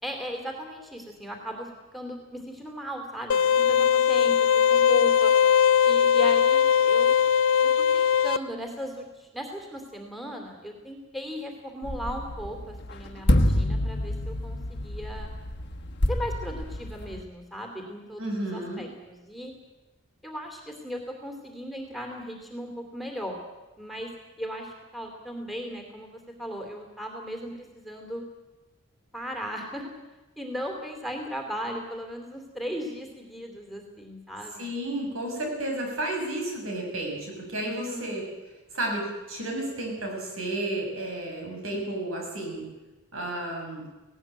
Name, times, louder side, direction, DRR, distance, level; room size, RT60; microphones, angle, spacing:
voice 1, 0.0-5.3 5.8-7.2 7.9-15.3 16.1-19.5 20.2-23.3 23.8-24.1 24.4-28.2 29.1-29.9 30.4-34.7 37.7-38.2, equal, ahead, 3 dB, 2.8 m, -37 dB
sound 1, 3.3-8.4, left 8 dB, 70° left, 0.6 m, -20 dB
sound 2, 11.8-17.2, left 1 dB, 50° left, 1.4 m, -28 dB
voice 2, 18.2-18.8 34.6-38.2 38.7-42.6 43.1-43.8, right 1 dB, 75° right, 1 dB, 6.9 m, -32 dB
18.5 x 17.5 x 8.9 m, 1.1 s
head